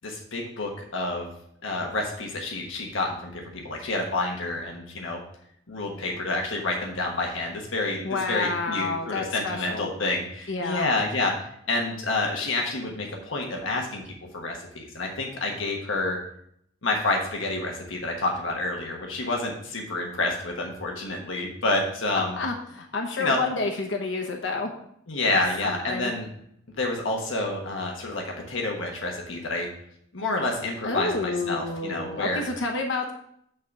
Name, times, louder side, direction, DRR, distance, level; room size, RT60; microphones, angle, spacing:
voice 1, 0.0-1.3 1.6-5.2 5.7-16.2 16.8-22.4 23.2-23.4 25.1-26.3 26.8-29.7 30.1-32.4, left 2 dB, 85° left, 0 dB, 1.3 m, -28 dB
voice 2, 8.0-9.9 10.5-10.9 22.4-24.7 25.6-26.1 30.8-33.1, left 3 dB, 65° left, 3 dB, 1.0 m, -29 dB
9.3 x 4.0 x 5.7 m, 0.70 s
head